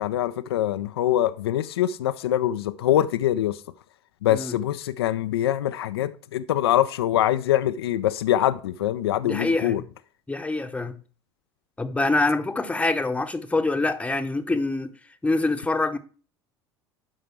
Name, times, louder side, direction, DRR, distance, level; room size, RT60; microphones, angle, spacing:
voice 1, 0.0-3.6 4.2-9.8, left 12 dB, 65° left, 0.5 m, -24 dB
voice 2, 9.2-9.8 10.3-11.0 11.8-14.9 15.2-16.0, left 2 dB, 10° left, 0.9 m, -25 dB
11.5 x 5.0 x 4.6 m
figure-of-eight pair, 70°, 14 cm